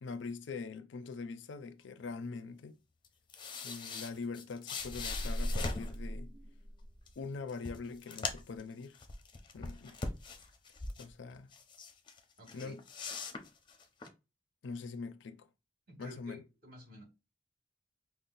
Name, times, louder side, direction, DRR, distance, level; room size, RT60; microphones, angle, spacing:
voice 1, 0.0-2.8 3.6-6.3 7.2-9.0 9.5-10.0 11.0-11.5 12.5-12.8 14.6-15.5 16.0-16.4, left 4 dB, 85° left, 0.4 m, -43 dB
sound 1, 3.0-6.0 7.1-7.2 7.5-8.6 8.9-11.1 11.5-12.2 12.5-14.1, left 4 dB, 25° left, 0.5 m, -41 dB
sound 2, 4.8-7.2, equal, 35° right, 0.4 m, -38 dB
voice 2, 12.4-12.7 15.9-17.0, left 1 dB, 55° right, 2.0 m, -52 dB
5.4 x 2.0 x 2.5 m
head